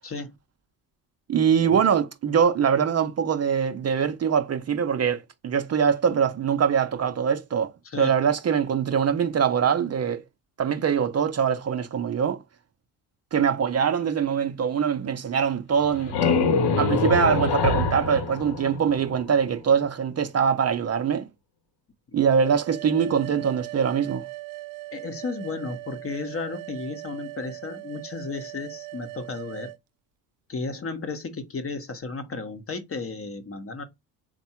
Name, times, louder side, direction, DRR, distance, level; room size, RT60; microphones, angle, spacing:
voice 1, 0.0-0.3 1.6-1.9 7.8-8.1 24.9-29.7 30.5-33.8, left 4 dB, 30° left, 0.9 m, -34 dB
voice 2, 1.3-7.7 8.0-10.2 10.6-12.4 13.3-16.1 16.8-21.2 22.1-24.2, right 7 dB, 35° right, 0.6 m, -23 dB
sound 1, 15.7-19.4, left 4 dB, 60° left, 0.9 m, -25 dB
sound 2, 22.2-29.8, right 20 dB, 80° right, 0.6 m, -39 dB
3.5 x 2.2 x 4.3 m
supercardioid pair, 70°, 46 cm